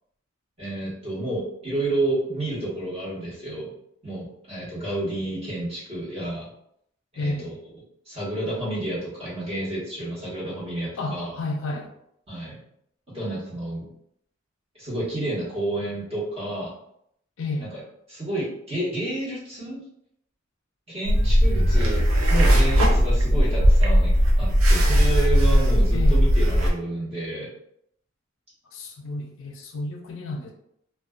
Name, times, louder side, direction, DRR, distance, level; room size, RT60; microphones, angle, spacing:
voice 1, 0.6-3.7 4.0-6.5 7.1-7.5 8.1-11.3 12.3-12.6 13.1-13.9 14.7-16.7 17.6-17.7 18.1-19.8 20.9-27.5, right 1 dB, 30° right, -8 dB, 1.1 m, -30 dB
voice 2, 7.2-7.6 11.0-11.9 17.4-17.8 25.9-26.2 28.7-30.5, left 2 dB, 65° left, 2 dB, 0.4 m, -31 dB
sound 1, 21.1-26.7, equal, 80° right, 0.5 m, -18 dB
2.4 x 2.2 x 2.3 m, 0.73 s
head